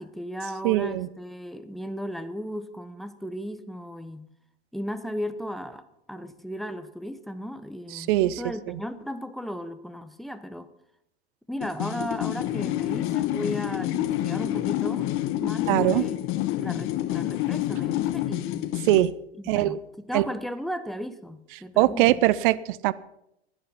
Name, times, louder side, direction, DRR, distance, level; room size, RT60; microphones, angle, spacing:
voice 1, 0.0-4.3 4.7-10.7 11.5-15.1 15.4-16.2 16.6-18.7 19.5-19.8 20.0-22.2, equal, ahead, 11 dB, 1.0 m, -35 dB
voice 2, 0.6-1.1 7.9-8.4 8.7-8.8 15.7-16.0 18.8-19.1 19.5-19.8 20.1-20.2 21.8-22.9, right 16 dB, 50° right, 19 dB, 0.7 m, -22 dB
sound 1, 11.6-19.1, left 14 dB, 40° left, 1.0 m, -28 dB
16.0 x 12.0 x 5.7 m, 0.81 s
hypercardioid pair, 100°, 33 cm